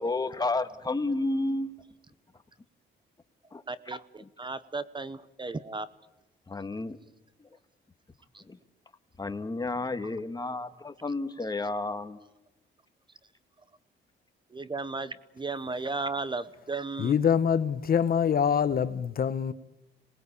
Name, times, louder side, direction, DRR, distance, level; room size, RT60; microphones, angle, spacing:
voice 1, 0.0-1.7 3.5-3.6 6.5-7.0 8.5-8.6 9.2-12.2, left 2 dB, 20° left, 1.7 m, -31 dB
voice 2, 3.7-5.9 8.3-8.4 11.6-11.7 14.5-17.2, right 3 dB, 25° right, 1.0 m, -35 dB
voice 3, 17.0-19.5, left 7 dB, 50° left, 1.0 m, -25 dB
27.0 x 20.0 x 8.5 m
cardioid pair, 90°, 20 cm